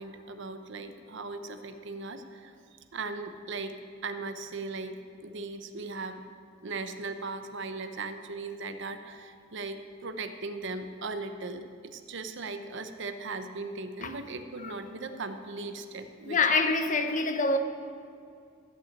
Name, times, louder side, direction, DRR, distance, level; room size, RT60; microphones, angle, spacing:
voice 1, 0.0-2.6 2.9-6.2 6.6-16.4, right 3 dB, 65° right, 0.8 m, -38 dB
voice 2, 16.3-17.6, left 3 dB, 40° left, 0.8 m, -26 dB
14.0 x 5.9 x 8.5 m
head